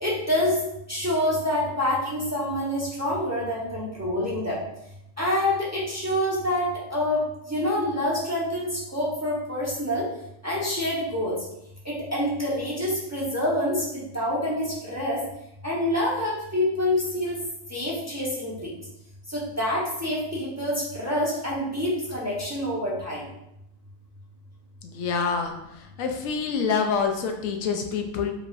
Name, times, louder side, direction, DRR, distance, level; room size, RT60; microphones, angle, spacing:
voice 1, 0.0-0.6 0.9-4.6 5.2-7.2 7.5-10.1 10.4-11.4 11.8-15.2 15.6-17.4 17.7-18.7 19.3-23.2, left 1 dB, 15° right, -7 dB, 0.9 m, -26 dB
voice 2, 24.8-28.3, left 5 dB, 80° left, 4 dB, 1.0 m, -27 dB
4.8 x 3.2 x 2.5 m, 0.83 s
omnidirectional pair, 1.4 m